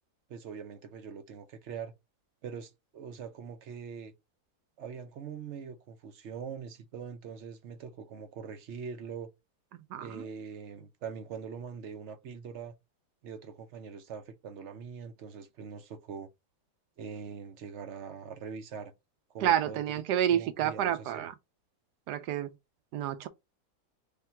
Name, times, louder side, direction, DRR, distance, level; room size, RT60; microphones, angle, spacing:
voice 1, 0.3-1.9 2.4-4.1 4.8-9.3 10.0-12.7 13.2-16.3 17.0-18.9 19.3-19.8 20.3-21.2, right 6 dB, 60° right, 0.8 m, -42 dB
voice 2, 9.9-10.3 19.4-21.3 22.1-22.5 22.9-23.3, right 10 dB, 80° right, 1.2 m, -29 dB
3.5 x 2.5 x 4.3 m
omnidirectional pair, 1.8 m